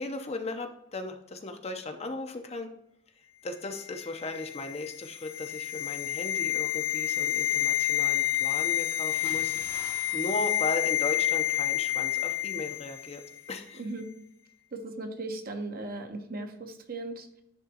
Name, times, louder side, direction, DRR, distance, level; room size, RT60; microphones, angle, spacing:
voice 1, 0.0-2.7 3.4-13.2 13.5-13.8, left 2 dB, 35° left, 6 dB, 0.8 m, -37 dB
sound 1, 3.9-13.1 13.4-13.5, left 13 dB, 80° left, 0.5 m, -29 dB
Bathtub (filling or washing) / Splash splatter, 9.0-11.5 11.8-12.1, left 2 dB, 15° left, 2.6 m, -49 dB
voice 2, 13.7-14.1 14.7-17.4, right 2 dB, 50° right, 5 dB, 1.0 m, -37 dB
10.5 x 3.7 x 2.9 m, 0.77 s
head